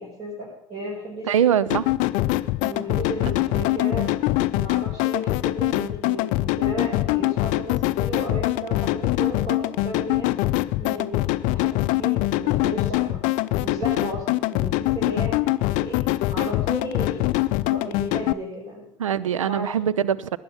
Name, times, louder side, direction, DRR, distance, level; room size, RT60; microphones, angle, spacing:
voice 1, 0.0-1.4 2.6-10.3 10.8-13.2 13.6-16.0 16.3-17.3 17.7-18.9 19.5-19.9, right 1 dB, 40° right, -5 dB, 5.3 m, -34 dB
voice 2, 1.2-1.9 3.3-3.4 19.0-20.4, right 9 dB, 75° right, 17 dB, 0.5 m, -22 dB
sound 1, 1.7-18.3, left 17 dB, 50° left, 0.5 m, -23 dB
19.0 x 9.3 x 5.6 m, 0.72 s
figure-of-eight pair, 65°, 17 cm